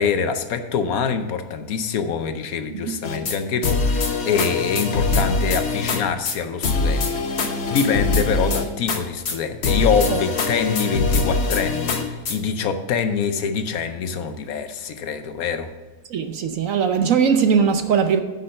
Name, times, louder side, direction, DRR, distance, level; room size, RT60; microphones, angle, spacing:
voice 1, 0.0-7.4 7.7-15.7, left 6 dB, 70° left, 1.1 m, -25 dB
sound 1, 3.0-3.4 3.6-6.0 6.3-6.4 6.6-9.0 9.3-9.4 9.6-12.4, left 3 dB, 45° left, 1.2 m, -23 dB
voice 2, 16.1-18.2, right 6 dB, 65° right, 1.0 m, -19 dB
9.9 x 5.4 x 6.4 m
omnidirectional pair, 1.7 m